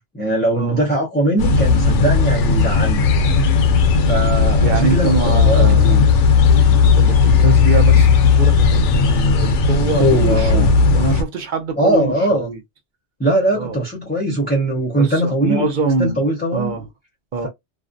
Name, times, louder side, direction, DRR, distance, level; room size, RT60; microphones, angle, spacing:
voice 1, 0.1-3.1 4.1-6.0 10.0-10.7 11.8-12.5 13.2-15.7 16.0-16.8, right 1 dB, 10° left, 0.6 m, -20 dB
sound 1, 1.4-11.2, left 5 dB, 80° left, 0.9 m, -15 dB
voice 2, 4.6-6.0 7.0-10.7 10.9-12.6 13.5-13.8 14.9-16.2 16.5-16.9 17.3-17.5, right 4 dB, 55° right, 0.6 m, -24 dB
2.5 x 2.0 x 2.5 m
omnidirectional pair, 1.2 m